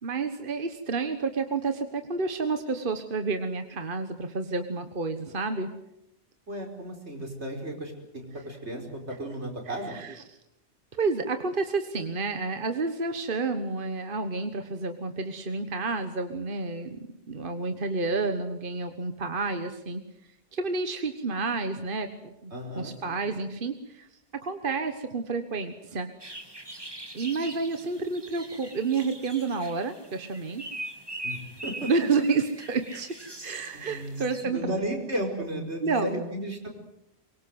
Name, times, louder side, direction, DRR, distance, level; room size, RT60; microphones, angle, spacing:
voice 1, 0.0-5.7 9.7-10.2 10.9-17.0 17.3-20.0 20.5-24.1 24.4-26.1 27.1-30.6 31.9-33.1 33.4-34.7 35.8-36.2, right 4 dB, 55° right, 8 dB, 1.5 m, -30 dB
voice 2, 6.5-10.0 22.5-23.2 31.2-32.1 33.7-36.7, right 1 dB, 85° right, 2 dB, 5.2 m, -34 dB
sound 1, 26.2-34.4, right 1 dB, 20° right, 2.3 m, -42 dB
24.0 x 22.5 x 8.0 m, 0.85 s
omnidirectional pair, 1.1 m